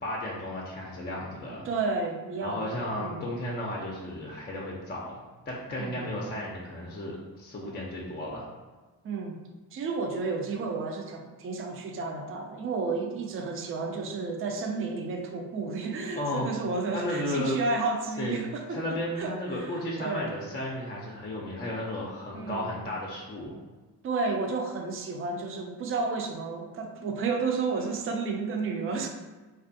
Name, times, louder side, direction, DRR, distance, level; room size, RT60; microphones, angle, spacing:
voice 1, 0.0-1.7 2.4-8.5 16.1-16.5 16.9-17.6 18.2-18.3 18.7-23.6, left 1 dB, 20° left, -4 dB, 0.5 m, -34 dB
voice 2, 1.6-3.3 5.8-6.1 9.0-9.4 9.7-20.3 22.3-22.7 24.0-29.1, right 4 dB, 30° right, 3 dB, 0.4 m, -32 dB
2.4 x 2.3 x 2.6 m, 1.2 s
hypercardioid pair, 50°, 48 cm